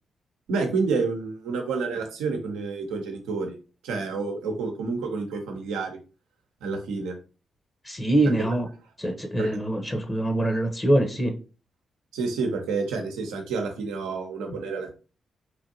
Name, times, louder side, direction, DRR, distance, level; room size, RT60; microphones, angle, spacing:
voice 1, 0.5-3.6 3.8-6.0 6.6-7.2 9.4-9.6 12.1-14.9, right 4 dB, 85° right, 3 dB, 0.8 m, -29 dB
voice 2, 7.8-8.6 9.0-11.3, right 1 dB, 30° left, 4 dB, 0.9 m, -24 dB
4.5 x 2.5 x 2.8 m, 0.34 s
hypercardioid pair, 45°, 0 cm